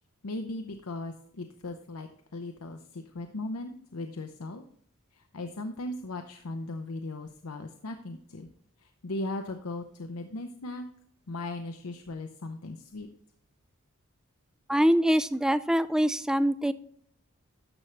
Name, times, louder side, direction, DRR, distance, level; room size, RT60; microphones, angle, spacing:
voice 1, 0.2-4.6 5.1-8.5 8.8-10.8 11.3-13.1, left 2 dB, 85° left, 5 dB, 0.8 m, -38 dB
voice 2, 14.7-16.7, equal, 5° right, 14 dB, 0.3 m, -24 dB
12.0 x 6.4 x 3.3 m, 0.66 s
head